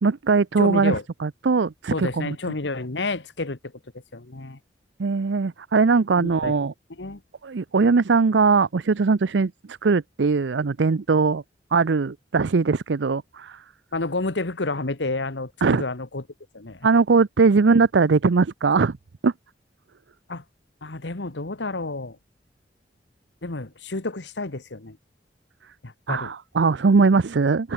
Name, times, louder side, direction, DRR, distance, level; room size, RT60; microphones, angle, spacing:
voice 1, 0.0-1.0 1.2-2.4 5.0-6.7 7.4-11.4 11.7-13.6 15.6-15.8 16.8-19.0 19.2-19.3 26.1-27.7, right 4 dB, 90° right, 0.6 m, -20 dB
voice 2, 0.6-1.0 1.9-4.6 6.2-6.6 6.9-7.2 13.9-16.2 16.5-16.9 20.3-20.4 20.8-22.2 23.4-25.0 25.8-26.3, left 2 dB, 90° left, 1.5 m, -30 dB
head